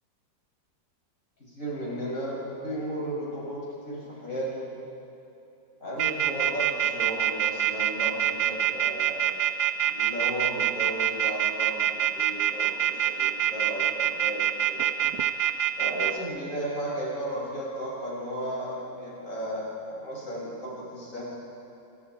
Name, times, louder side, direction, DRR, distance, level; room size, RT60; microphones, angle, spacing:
voice 1, 1.4-4.7 5.8-9.3 9.9-14.9 15.8-21.2, right 1 dB, 40° left, -6 dB, 8.0 m, -34 dB
sound 1, 6.0-16.1, right 10 dB, 80° right, 1.7 m, -24 dB
28.5 x 27.0 x 4.8 m, 2.8 s
omnidirectional pair, 2.1 m